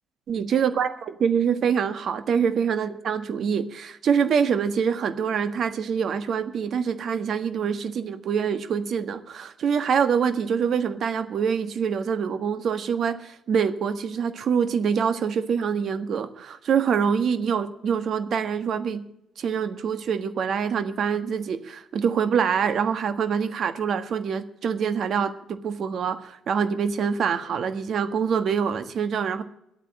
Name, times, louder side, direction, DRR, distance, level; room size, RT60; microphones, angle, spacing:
voice 1, 0.3-19.0 19.4-29.4, right 7 dB, 55° right, 10 dB, 1.5 m, -25 dB
12.0 x 9.0 x 8.9 m, 0.78 s
cardioid pair, 95°, 0 cm